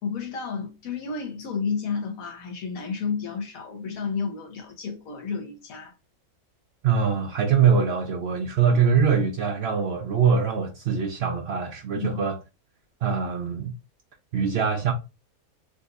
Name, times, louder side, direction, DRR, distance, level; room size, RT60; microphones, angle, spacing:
voice 1, 0.0-5.9 12.0-12.2, left 5 dB, 75° left, 1.3 m, -31 dB
voice 2, 6.8-12.4 13.0-13.7 14.3-14.9, right 6 dB, 65° right, 0.6 m, -23 dB
3.8 x 2.6 x 2.5 m
omnidirectional pair, 1.5 m